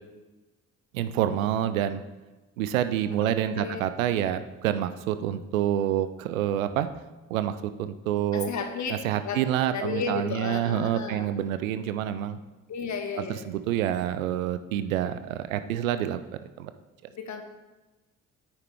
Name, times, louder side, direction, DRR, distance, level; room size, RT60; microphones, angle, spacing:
voice 1, 0.9-2.0 2.6-6.9 7.3-8.5 9.0-12.4 13.2-16.2 16.6-16.7, right 11 dB, 80° right, 11 dB, 0.5 m, -27 dB
voice 2, 3.1-3.8 4.2-4.3 8.3-8.9 9.2-9.4 9.7-11.4 12.7-13.5 17.1-17.4, left 5 dB, 45° left, 5 dB, 1.3 m, -33 dB
9.4 x 5.9 x 3.4 m, 1.2 s
figure-of-eight pair, 45°, 40 cm